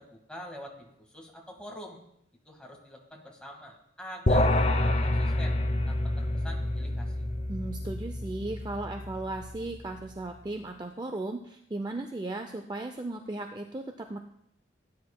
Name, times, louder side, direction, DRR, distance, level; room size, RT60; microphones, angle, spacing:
voice 1, 0.0-2.0 2.4-5.5 5.9-7.1, equal, 5° left, 0 dB, 1.7 m, -45 dB
sound 1, 4.3-9.8, left 1 dB, 35° left, 0.6 m, -28 dB
voice 2, 7.5-14.2, right 2 dB, 20° right, 5 dB, 0.4 m, -36 dB
17.0 x 9.5 x 2.2 m, 0.73 s
head